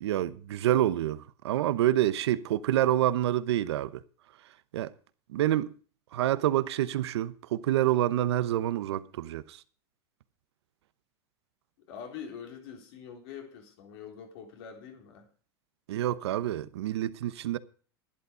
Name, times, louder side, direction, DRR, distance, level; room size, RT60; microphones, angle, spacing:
voice 1, 0.0-4.0 4.7-4.9 5.3-5.7 6.1-9.6 15.9-17.6, right 13 dB, 80° right, 0.9 m, -27 dB
voice 2, 11.8-15.3, left 7 dB, 70° left, 3.7 m, -44 dB
11.0 x 11.0 x 5.0 m
hypercardioid pair, 110°, 14 cm